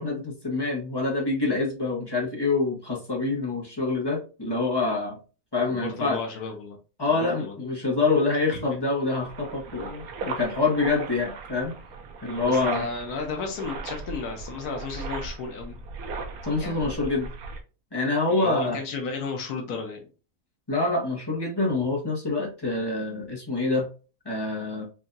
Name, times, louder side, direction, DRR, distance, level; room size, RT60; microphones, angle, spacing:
voice 1, 0.0-5.2 5.5-6.2 7.0-11.7 12.2-12.8 16.5-17.3 17.9-18.8 20.7-23.9 24.2-24.9, left 3 dB, 20° left, -2 dB, 1.0 m, -26 dB
voice 2, 5.7-6.8 7.1-7.6 8.5-8.6 12.4-15.8 16.6-16.9 18.3-20.1, left 4 dB, 80° left, 3 dB, 1.3 m, -33 dB
sound 1, 9.2-17.6, right 4 dB, 75° right, 1.1 m, -38 dB
4.8 x 2.6 x 2.5 m, 0.34 s
omnidirectional pair, 1.6 m